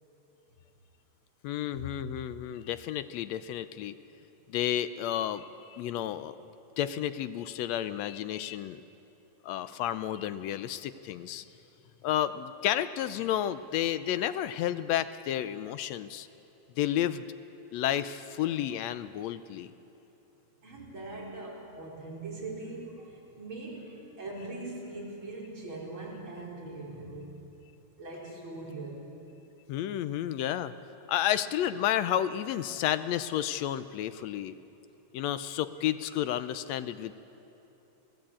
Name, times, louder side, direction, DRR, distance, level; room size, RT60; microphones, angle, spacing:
voice 1, 1.4-4.0 4.5-6.4 6.8-8.8 9.4-11.5 12.0-16.3 16.8-17.3 17.7-19.7 29.7-30.7 31.1-34.5 35.1-37.1, left 11 dB, 75° left, 13 dB, 1.7 m, -31 dB
voice 2, 20.6-27.4 28.0-29.0, right 2 dB, 40° right, -4 dB, 5.2 m, -41 dB
27.0 x 17.0 x 8.7 m, 3.0 s
omnidirectional pair, 3.4 m